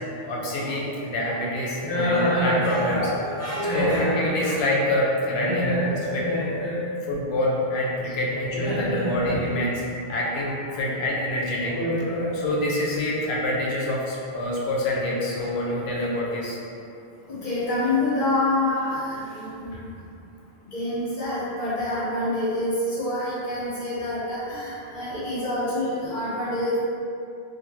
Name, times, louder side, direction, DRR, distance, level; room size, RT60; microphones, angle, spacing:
voice 1, 0.2-3.1 3.7-5.7 7.1-9.8 10.1-11.7 12.4-16.6, left 1 dB, 80° left, -4 dB, 0.8 m, -26 dB
voice 2, 1.8-4.6 5.3-6.8 8.0-9.5 11.6-12.3 15.4-15.5 17.3-19.8 20.7-26.8, left 1 dB, 40° left, -12 dB, 0.9 m, -27 dB
2.5 x 2.2 x 3.0 m, 2.6 s
omnidirectional pair, 1.1 m